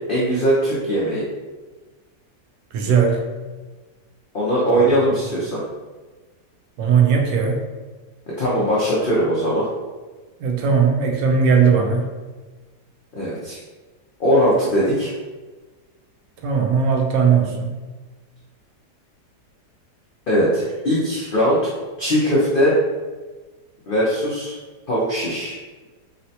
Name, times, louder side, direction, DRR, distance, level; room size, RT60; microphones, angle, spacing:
voice 1, 0.1-1.2 4.3-5.6 8.4-9.7 13.1-13.6 14.2-15.1 20.3-21.7 22.0-22.7 23.9-24.6 24.9-25.5, equal, 75° left, -7 dB, 0.5 m, -20 dB
voice 2, 2.7-3.2 4.7-4.9 6.8-7.6 10.4-12.1 16.4-17.8, right 6 dB, 80° right, 2 dB, 1.2 m, -18 dB
4.1 x 2.1 x 2.7 m, 1.3 s
omnidirectional pair, 1.9 m